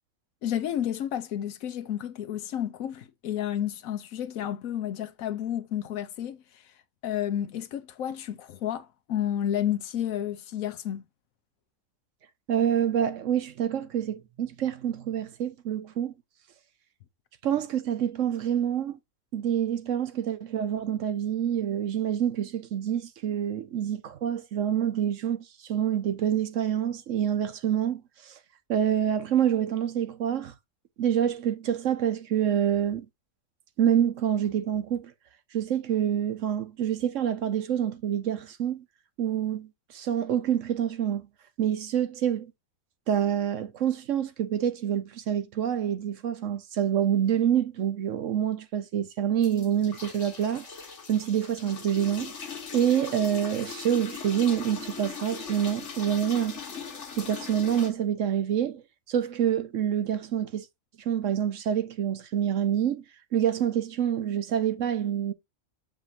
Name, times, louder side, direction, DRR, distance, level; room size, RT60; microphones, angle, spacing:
voice 1, 0.4-6.4 7.0-11.0, left 10 dB, 75° left, 1.2 m, -31 dB
voice 2, 12.5-16.1 17.4-19.0 19.3-28.4 28.7-30.5 31.0-33.1 33.8-35.1 35.5-38.8 39.2-41.3 41.6-42.5 43.1-50.7 51.1-52.3 52.7-56.6 57.2-58.8 59.1-60.7 61.0-63.0 63.3-65.3, right 9 dB, 65° right, 1.1 m, -27 dB
sound 1, 49.4-57.9, left 6 dB, 60° left, 1.6 m, -40 dB
7.4 x 5.1 x 2.7 m
omnidirectional pair, 1.5 m